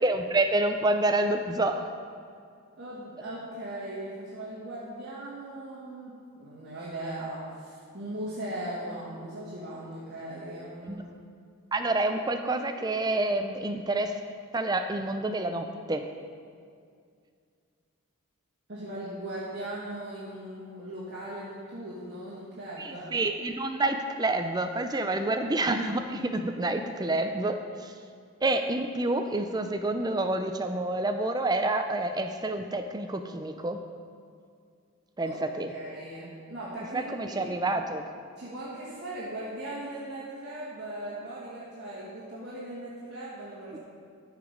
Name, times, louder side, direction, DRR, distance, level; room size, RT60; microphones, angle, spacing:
voice 1, 0.0-1.9 10.9-11.0 11.7-14.2 14.5-16.1 22.8-27.9 28.4-33.8 35.2-35.7 36.9-38.1, right 2 dB, 20° right, 7 dB, 0.4 m, -28 dB
voice 2, 2.8-11.1 18.7-23.2 25.0-25.1 35.2-35.4 35.7-37.5 38.4-43.8, right 1 dB, 50° right, -8 dB, 1.9 m, -39 dB
13.5 x 4.9 x 5.2 m, 2.2 s
head